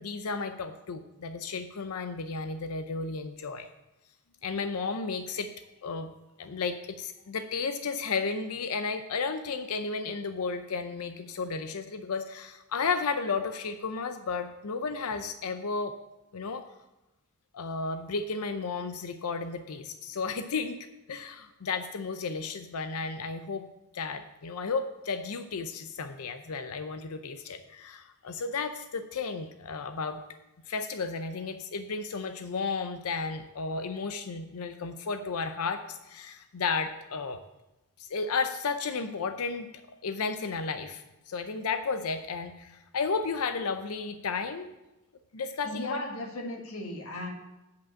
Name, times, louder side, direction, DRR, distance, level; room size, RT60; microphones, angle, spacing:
voice 1, 0.0-3.7 4.4-5.5 5.8-6.1 6.4-15.9 16.3-16.7 17.5-23.6 23.9-30.2 30.7-37.4 38.0-39.7 40.0-44.7 45.3-46.0, left 4 dB, 90° left, 9 dB, 0.6 m, -33 dB
voice 2, 45.6-47.3, left 1 dB, 70° left, 0 dB, 1.9 m, -36 dB
8.5 x 5.1 x 7.4 m, 1.0 s
head